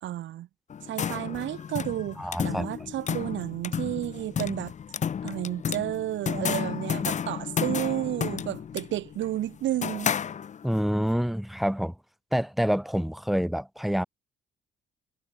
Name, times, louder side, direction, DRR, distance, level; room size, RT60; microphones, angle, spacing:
voice 1, 0.0-0.5 0.8-4.7 5.2-10.1, right 13 dB, 70° right, 0.9 m, -31 dB
sound 1, 0.7-10.8, left 8 dB, 35° left, 0.6 m, -32 dB
voice 2, 2.2-2.7 10.6-11.9 12.3-14.0, equal, ahead, 1.8 m, -27 dB
cardioid pair, 90°, 20 cm